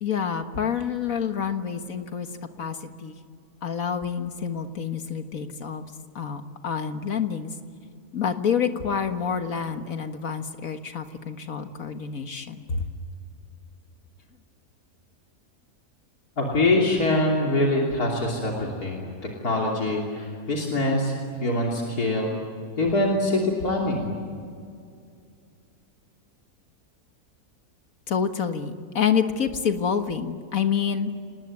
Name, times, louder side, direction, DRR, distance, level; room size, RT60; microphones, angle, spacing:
voice 1, 0.0-2.3 2.6-2.8 3.0-3.2 3.6-5.8 6.1-7.5 8.1-12.8 28.1-31.1, left 7 dB, 65° left, 7 dB, 1.9 m, -27 dB
voice 2, 16.4-19.0 19.4-22.4 22.8-24.1, left 2 dB, 85° left, -2 dB, 3.6 m, -24 dB
28.5 x 19.5 x 9.6 m, 2.3 s
omnidirectional pair, 1.6 m